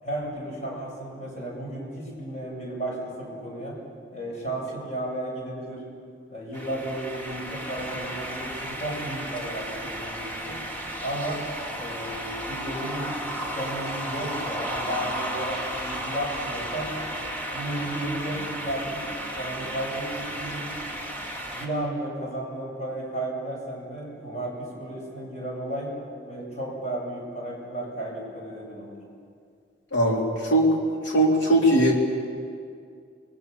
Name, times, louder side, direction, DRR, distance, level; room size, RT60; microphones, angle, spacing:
voice 1, 0.0-3.8 4.1-5.9 6.3-10.7 11.0-11.4 11.8-16.9 17.5-19.1 19.4-20.8 21.3-26.0 26.2-29.0, right 1 dB, 40° left, -2 dB, 7.8 m, -33 dB
sound 1, 6.5-21.7, right 1 dB, 10° left, 2.6 m, -34 dB
voice 2, 29.9-30.2 30.5-30.7 31.1-31.9, right 1 dB, 90° left, -2 dB, 3.6 m, -19 dB
29.0 x 22.5 x 7.0 m, 2.3 s
head